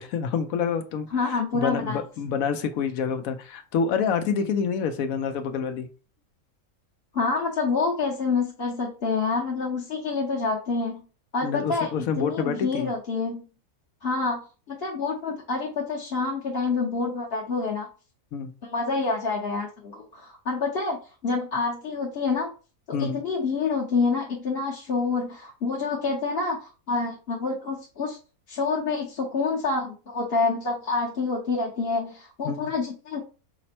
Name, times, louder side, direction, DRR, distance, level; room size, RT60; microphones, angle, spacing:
voice 1, 0.0-5.9 11.4-12.9 18.3-18.5 22.9-23.2 32.4-32.7, left 6 dB, 75° left, 8 dB, 1.1 m, -27 dB
voice 2, 1.1-2.0 7.1-11.0 11.3-11.9 12.2-13.5 14.0-14.4 14.7-17.9 18.7-21.0 21.2-22.5 23.0-28.2 28.5-33.2, left 4 dB, 45° left, -4 dB, 1.1 m, -27 dB
5.9 x 2.1 x 4.2 m, 0.35 s
omnidirectional pair, 1.5 m